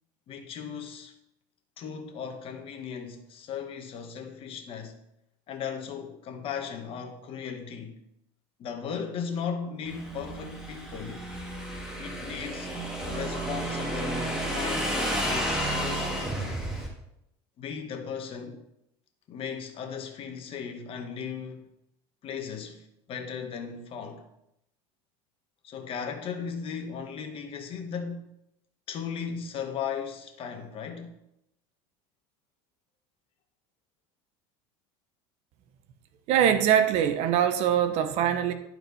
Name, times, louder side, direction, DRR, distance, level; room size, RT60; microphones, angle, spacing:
voice 1, 0.3-1.2 1.8-5.0 5.5-8.0 8.6-11.2 12.0-12.7 13.0-16.6 17.6-18.6 19.3-21.7 22.2-24.2 25.6-28.3 28.9-31.1, left 6 dB, 45° left, 1.4 m, -37 dB
Motorcycle / Engine, 9.9-16.9, right 1 dB, 5° right, 2.0 m, -31 dB
voice 2, 36.3-38.5, right 9 dB, 60° right, 0.8 m, -23 dB
11.0 x 4.5 x 4.1 m
supercardioid pair, 110°, 13 cm